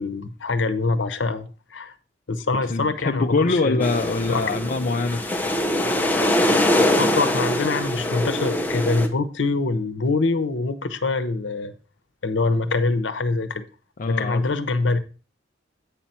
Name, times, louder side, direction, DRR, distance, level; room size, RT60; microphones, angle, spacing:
voice 1, 0.0-1.9 2.3-3.9 4.3-4.4 7.0-11.7 12.2-13.6 14.1-15.0, left 3 dB, 80° left, 0.8 m, -24 dB
voice 2, 2.7-5.2 14.0-14.4, left 3 dB, 45° left, 0.5 m, -23 dB
sound 1, 3.8-9.1, left 1 dB, 10° left, 0.8 m, -23 dB
8.5 x 5.7 x 4.2 m
head